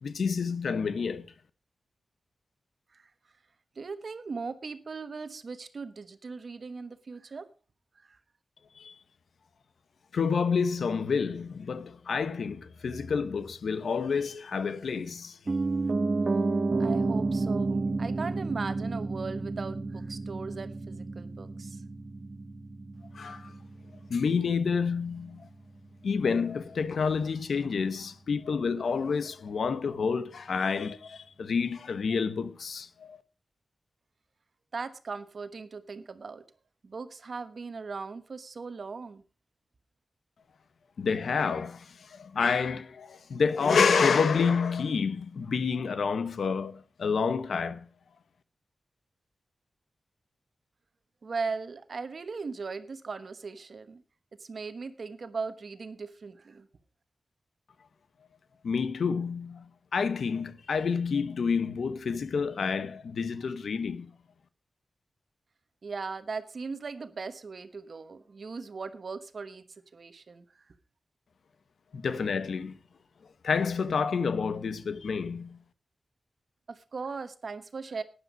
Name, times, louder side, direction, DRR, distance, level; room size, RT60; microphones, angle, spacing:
voice 1, 0.0-1.2 8.8-8.9 10.1-15.4 23.1-23.5 24.1-25.5 26.0-33.2 41.0-47.8 58.6-59.6 59.9-64.1 71.9-72.8 73.4-75.6, left 5 dB, 85° left, 1.0 m, -29 dB
voice 2, 3.8-7.4 8.0-8.2 16.8-21.8 34.7-36.4 36.8-39.2 51.2-54.0 54.4-56.7 65.8-69.6 69.9-70.5 76.7-78.0, right 4 dB, 60° right, 1.1 m, -38 dB
Piano, 15.5-25.5 25.8-25.9, right 3 dB, 40° right, 1.2 m, -31 dB
12.5 x 10.0 x 5.2 m
wide cardioid pair, 90°, 0 cm